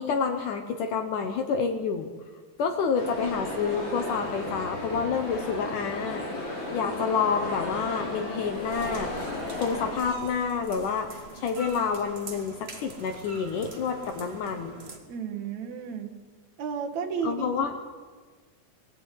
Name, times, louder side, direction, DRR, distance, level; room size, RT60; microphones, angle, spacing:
voice 1, 0.0-2.1 2.6-6.2 6.7-9.3 9.6-14.7 17.2-17.7, left 5 dB, 65° left, 6 dB, 2.1 m, -28 dB
sound 1, 3.0-9.9, left 1 dB, 45° left, 6.5 m, -34 dB
sound 2, 8.5-15.0, right 2 dB, 25° right, 1.3 m, -43 dB
voice 2, 15.1-16.1 16.6-17.5, right 6 dB, 50° right, 1 dB, 2.8 m, -32 dB
21.5 x 14.0 x 9.5 m, 1.5 s
omnidirectional pair, 4.7 m